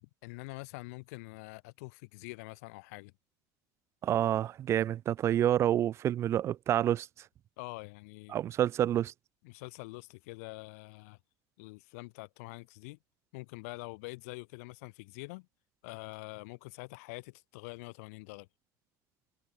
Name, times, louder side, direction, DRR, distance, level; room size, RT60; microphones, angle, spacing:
voice 1, 0.0-3.1 7.6-8.4 9.4-11.2 11.6-13.0 13.3-15.5 15.8-18.5, left 26 dB, 90° left, 5.3 m, -45 dB
voice 2, 4.0-7.1 8.3-9.1, right 11 dB, 35° right, 0.9 m, -28 dB
cardioid pair, 150°, 8 cm